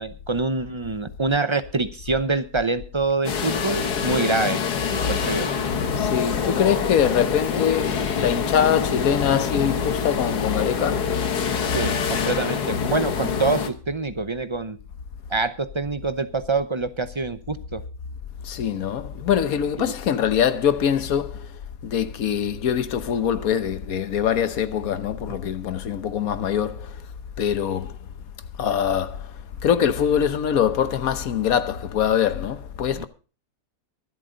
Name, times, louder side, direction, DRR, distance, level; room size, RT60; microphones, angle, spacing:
voice 1, 0.0-4.6 4.9-5.5 11.7-14.8 15.3-17.8 19.8-19.9 25.3-25.4 33.0-33.1, right 3 dB, 35° right, 0.4 m, -26 dB
sound 1, 3.2-13.7, left 6 dB, 90° left, 1.8 m, -26 dB
voice 2, 5.9-11.7 18.4-21.5 21.8-27.0 27.4-28.0 28.6-29.3 29.6-33.1, left 8 dB, 65° left, 1.4 m, -23 dB
23.5 x 8.2 x 3.8 m
omnidirectional pair, 1.6 m